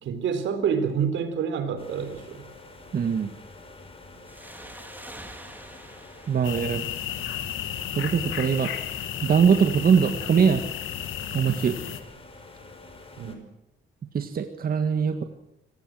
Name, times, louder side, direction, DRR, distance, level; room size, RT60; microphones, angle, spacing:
voice 1, 0.0-2.5 13.2-13.5, right 7 dB, 75° right, 10 dB, 3.7 m, -28 dB
sound 1, 1.8-13.4, left 2 dB, 30° left, 5.6 m, -47 dB
voice 2, 2.9-3.3 6.3-6.8 8.0-8.7 9.2-10.6 11.3-11.8 14.1-15.2, right 6 dB, 45° right, 7 dB, 1.7 m, -22 dB
sound 2, 4.3-7.6, right 1 dB, 10° right, 4.0 m, -46 dB
sound 3, 6.4-12.0, left 10 dB, 80° left, 2.2 m, -33 dB
25.0 x 18.5 x 7.7 m, 0.84 s
cardioid pair, 90°, 20 cm